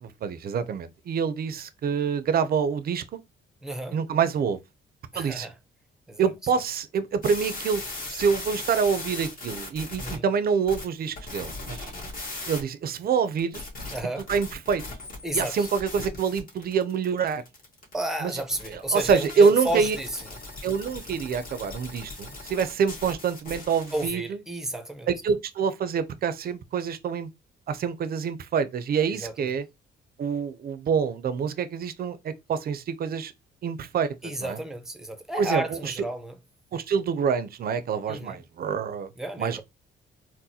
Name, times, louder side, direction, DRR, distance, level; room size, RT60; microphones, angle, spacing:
voice 1, 0.0-3.2 3.9-4.6 5.2-5.5 6.2-7.8 8.1-11.9 12.5-13.6 14.3-14.8 15.3-17.4 18.2-18.3 18.9-20.0 20.6-24.4 25.1-27.3 27.7-29.7 30.2-33.3 33.6-34.6 35.4-35.9 36.7-39.1 39.4-39.6, right 6 dB, 50° right, 0.5 m, -26 dB
voice 2, 3.6-4.0 5.1-5.5 6.1-6.3 10.0-10.2 13.9-14.3 15.2-15.7 17.9-20.2 23.9-25.1 29.1-29.5 34.2-36.4 38.1-38.4 39.2-39.6, right 1 dB, ahead, 0.6 m, -32 dB
sound 1, 7.2-10.2 10.7-12.6 13.4-24.1, left 2 dB, 45° left, 1.4 m, -38 dB
3.9 x 2.1 x 2.7 m
cardioid pair, 90°, 20 cm